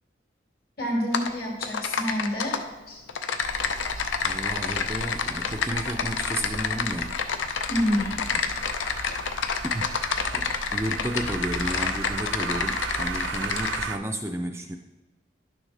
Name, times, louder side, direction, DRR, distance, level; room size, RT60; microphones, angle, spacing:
voice 1, 0.8-2.6 2.9-3.0 4.0-4.1 7.7-8.2, equal, 55° left, -2 dB, 2.4 m, -27 dB
Typing, 1.1-1.3 1.6-2.6 3.1-13.8, left 6 dB, 85° left, 0.6 m, -29 dB
sound 1, 3.4-14.0, right 4 dB, 80° right, 0.5 m, -37 dB
voice 2, 4.2-7.2 9.7-9.9 10.3-14.8, right 1 dB, 15° right, 5 dB, 0.4 m, -32 dB
11.5 x 6.3 x 3.3 m, 1.1 s
head